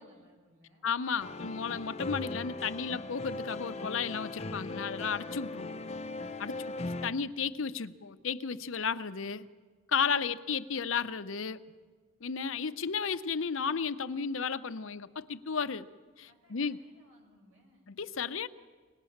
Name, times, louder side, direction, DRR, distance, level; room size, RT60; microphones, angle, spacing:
voice 1, 0.0-1.0 16.3-17.9, equal, 85° right, 0 dB, 7.7 m, -64 dB
voice 2, 0.8-5.8 6.4-9.5 9.9-11.6 12.2-15.9 16.2-16.8 17.9-18.5, left 6 dB, 70° left, 12 dB, 0.7 m, -33 dB
sound 1, 1.2-7.1, left 2 dB, 30° left, 0.7 m, -39 dB
24.5 x 19.5 x 7.2 m, 1.5 s
head